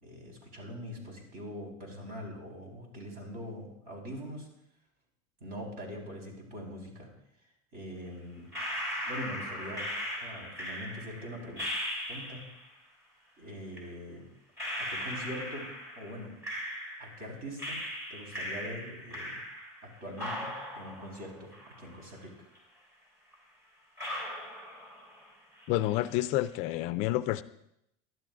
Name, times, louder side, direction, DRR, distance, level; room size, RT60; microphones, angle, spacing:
voice 1, 0.0-4.5 5.4-7.1 7.7-8.5 9.0-9.9 10.2-11.7 12.1-12.4 13.4-14.2 14.8-15.7 15.9-16.3 17.0-17.8 18.1-19.4 19.8-20.5 20.7-21.5 21.8-22.3, equal, 55° right, 0 dB, 4.4 m, -42 dB
sound 1, 8.5-12.6 13.7-13.8 14.6-17.3 17.6-19.9 20.2-22.2 22.5-22.6 23.3-23.4 24.0-25.3 25.6-26.1, left 1 dB, 15° right, 3.7 m, -38 dB
voice 2, 25.7-27.4, left 15 dB, 45° left, 14 dB, 0.4 m, -29 dB
19.5 x 12.0 x 2.5 m, 0.77 s
cardioid pair, 175°, 17 cm